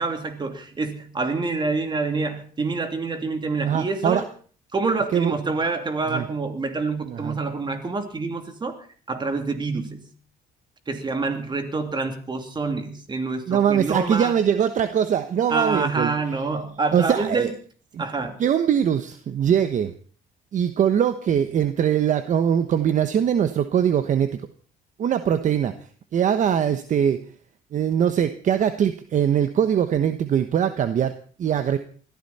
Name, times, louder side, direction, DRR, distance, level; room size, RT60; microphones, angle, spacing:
voice 1, 0.0-4.3 4.7-8.8 9.1-10.1 10.9-14.3 15.5-17.5 18.0-18.4, right 3 dB, 25° right, 6 dB, 3.0 m, -27 dB
voice 2, 3.6-4.2 5.1-5.3 6.1-6.2 7.0-7.4 13.5-16.1 16.9-17.5 17.9-18.0 18.4-19.9 20.5-24.4 25.0-25.7 26.1-27.2 27.7-31.8, right 8 dB, 50° right, 10 dB, 1.1 m, -22 dB
21.0 x 14.5 x 4.3 m, 0.42 s
cardioid pair, 110°, 17 cm